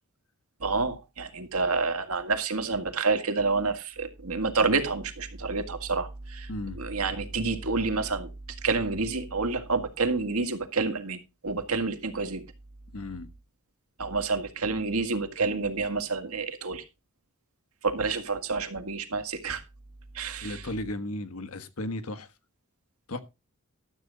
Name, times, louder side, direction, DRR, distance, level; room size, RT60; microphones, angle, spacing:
voice 1, 0.6-6.5 6.8-8.3 8.6-12.4 14.0-16.8 17.8-19.6 20.1-20.6, right 4 dB, 85° right, 1.9 m, -28 dB
voice 2, 6.5-6.8 12.9-13.3 20.4-22.3 23.1-23.2, left 1 dB, 80° left, 1.4 m, -35 dB
12.5 x 8.4 x 4.0 m
head